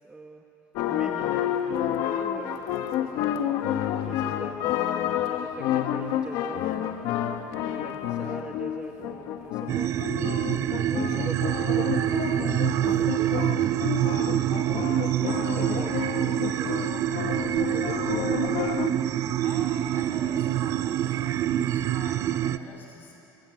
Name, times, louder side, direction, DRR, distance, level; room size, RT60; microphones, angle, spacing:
voice 1, 0.0-0.4 0.8-1.5 2.0-2.8 3.1-3.5 4.0-4.7 5.2-7.0 7.6-14.3 14.8-18.0, right 3 dB, 15° right, 2 dB, 1.5 m, -43 dB
sound 1, 0.8-18.9, left 10 dB, 65° left, 1.6 m, -30 dB
sound 2, 9.7-22.6, right 12 dB, 45° right, 0.7 m, -26 dB
voice 2, 19.4-23.1, left 3 dB, 30° left, 0 dB, 7.6 m, -45 dB
25.5 x 24.0 x 9.4 m, 2.8 s
cardioid pair, 140°, 7 cm